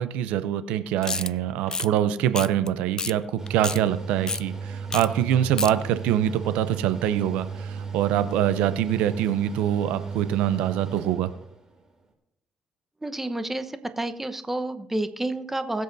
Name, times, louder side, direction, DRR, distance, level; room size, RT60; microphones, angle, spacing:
voice 1, 0.0-11.3, right 11 dB, 90° right, 13 dB, 0.5 m, -24 dB
sound 1, 1.0-1.3 1.7-1.9 2.3-2.7 3.0-3.1 3.5-3.8 4.3-4.4 4.9-5.1 5.3-5.7, left 4 dB, 30° left, 0.3 m, -29 dB
Mechanical fan, 3.4-11.8, right 5 dB, 30° right, 2.7 m, -35 dB
voice 2, 13.0-15.8, right 1 dB, 10° right, 9 dB, 1.0 m, -30 dB
21.0 x 7.8 x 2.7 m, 0.81 s
supercardioid pair, 75°, 2 cm